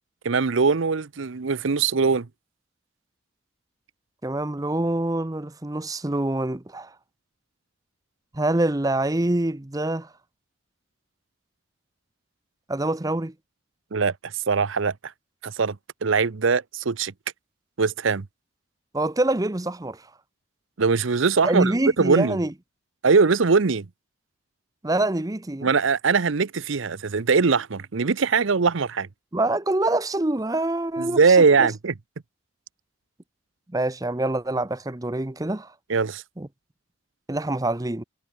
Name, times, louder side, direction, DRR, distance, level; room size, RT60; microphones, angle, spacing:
voice 1, 0.2-2.3 13.9-14.9 15.4-17.1 17.8-18.3 20.8-22.4 23.0-23.9 25.6-29.1 31.0-31.9 35.9-36.2, right 4 dB, 75° right, 0.7 m, -21 dB
voice 2, 4.2-6.9 8.3-10.1 12.7-13.3 18.9-20.1 21.4-22.5 24.8-25.7 29.3-31.7 33.7-35.7 36.4-36.5 37.3-38.0, right 2 dB, 20° right, 0.7 m, -25 dB
head